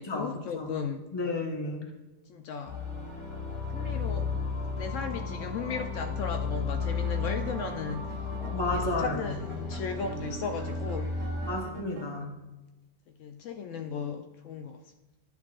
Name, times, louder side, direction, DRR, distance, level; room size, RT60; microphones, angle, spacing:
voice 1, 0.0-1.0 2.3-2.8 3.7-4.3 4.8-8.1 8.5-11.1 11.6-11.8 13.2-14.8, left 6 dB, 75° left, 6 dB, 0.9 m, -36 dB
voice 2, 1.1-1.9 8.5-9.3 11.5-12.3, left 2 dB, 20° left, 1 dB, 1.0 m, -32 dB
sound 1, 2.6-11.6, left 4 dB, 60° left, 2.7 m, -33 dB
sound 2, 6.8-8.6 9.3-12.1, right 5 dB, 55° right, 0.6 m, -48 dB
10.5 x 6.8 x 2.4 m, 1.1 s
omnidirectional pair, 1.4 m